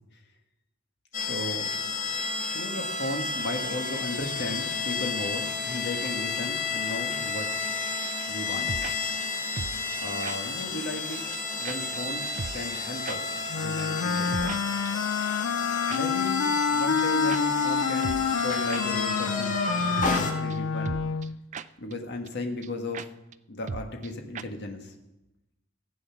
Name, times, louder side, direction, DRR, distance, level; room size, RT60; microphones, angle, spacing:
sound 1, 1.1-20.3, left 4 dB, 40° left, 1.7 m, -31 dB
voice 1, 1.3-1.7 2.5-7.5 8.3-8.7 10.0-11.2 11.6-14.7 15.9-21.0 21.8-23.1 23.5-24.9, left 2 dB, 55° left, 3 dB, 1.7 m, -35 dB
sound 2, 8.5-8.9 9.2-9.3 9.6-10.0 10.2-10.4 10.6-10.7 11.0-11.1 11.3-11.4 11.6-11.8 12.0-12.1 12.4-12.8 13.1-13.2 13.4-13.5 13.8-13.9 14.1-14.6 14.8-14.9 15.9-16.0 16.3-16.4 16.6-16.7 17.0-17.1 17.3-17.4 17.7-17.8 18.0-18.4 18.7-18.8 19.1-19.2 19.4-19.5 19.8-20.2 20.5-20.6 20.8-21.3 21.5-21.7 21.9-22.0 22.3-22.4 22.6-22.7 22.9-23.1 23.3-23.4 23.7-24.1 24.3-24.4, right 5 dB, 35° right, 0.4 m, -36 dB
Wind instrument woodwind instrument, 13.5-21.4, left 6 dB, 75° left, 0.4 m, -28 dB
15.5 x 8.5 x 5.9 m, 0.93 s
head